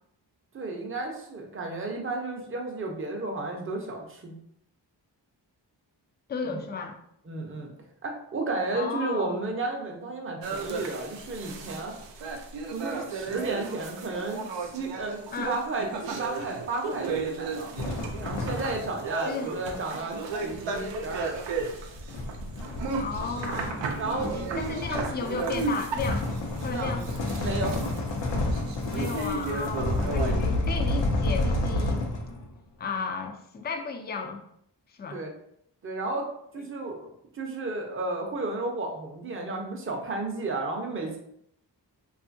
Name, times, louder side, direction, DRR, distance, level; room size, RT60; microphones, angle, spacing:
voice 1, 0.5-4.4 6.5-6.6 7.3-7.7 8.0-11.9 12.7-17.7 18.2-21.4 24.0-24.3 24.9-25.0 26.7-27.9 35.1-35.3 35.8-36.3 36.5-37.1 37.3-41.2, right 2 dB, 30° right, 1 dB, 0.6 m, -33 dB
voice 2, 6.3-7.0 8.7-9.4 15.3-15.6 19.3-19.5 23.0-26.2 26.6-27.1 28.9-32.1 32.8-34.4 35.0-35.2, left 5 dB, 25° left, 5 dB, 0.3 m, -34 dB
sound 1, 10.4-30.3, right 4 dB, 85° right, 0.5 m, -34 dB
sound 2, 17.8-19.1 20.3-32.5, left 2 dB, 85° left, 0.6 m, -30 dB
2.6 x 2.4 x 2.6 m, 0.73 s
cardioid pair, 70°, 43 cm